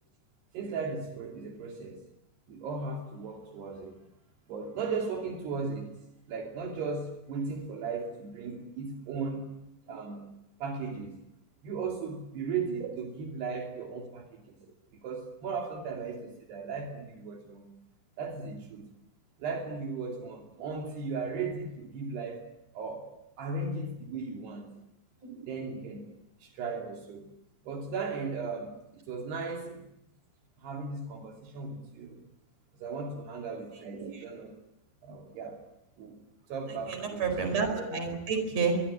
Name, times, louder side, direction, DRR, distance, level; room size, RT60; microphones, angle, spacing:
voice 1, 0.5-2.0 2.5-4.0 4.5-6.0 6.3-9.6 9.9-10.3 10.6-11.2 11.6-14.6 15.0-17.7 18.2-18.9 19.4-22.5 22.7-24.7 25.5-26.0 26.4-27.3 27.7-29.9 30.6-32.2 32.8-34.5 35.0-35.6 36.0-36.2 36.5-37.4 37.8-37.9, right 4 dB, 75° right, 4.8 m, -36 dB
voice 2, 33.9-34.2 37.0-38.8, right 5 dB, 40° right, 5.9 m, -30 dB
23.5 x 23.5 x 9.9 m
omnidirectional pair, 4.8 m